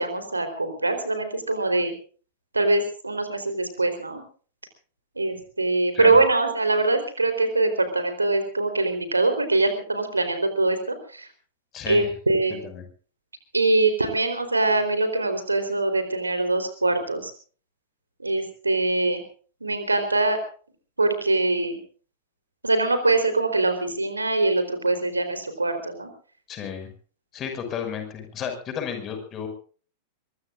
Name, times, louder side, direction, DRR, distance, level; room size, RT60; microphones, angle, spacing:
voice 1, 0.0-1.9 2.5-4.2 5.2-11.3 11.9-12.6 13.5-17.3 18.2-19.2 19.6-20.4 21.0-21.8 22.6-26.1, right 2 dB, 80° right, 8 dB, 4.0 m, -23 dB
voice 2, 11.7-12.1 12.6-12.8 26.5-26.9 27.3-29.5, left 7 dB, 30° left, 6 dB, 6.1 m, -32 dB
24.0 x 22.0 x 2.6 m, 0.42 s
figure-of-eight pair, 95°, 0 cm